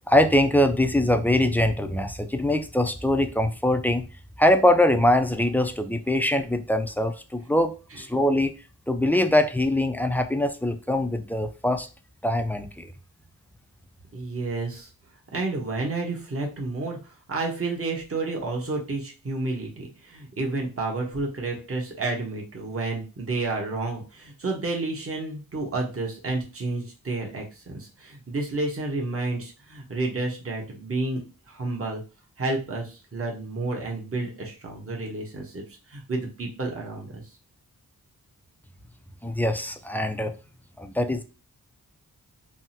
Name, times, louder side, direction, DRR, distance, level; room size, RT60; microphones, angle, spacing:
voice 1, 0.1-4.1 4.4-8.6 8.9-11.9 12.2-12.9 39.2-40.3 40.8-41.2, left 1 dB, 5° left, 7 dB, 0.4 m, -23 dB
voice 2, 14.1-14.9 15.3-31.2 31.5-32.0 32.4-35.6 35.9-37.2, right 3 dB, 35° right, 0 dB, 1.1 m, -30 dB
3.5 x 2.0 x 2.8 m, 0.33 s
cardioid pair, 50°, 37 cm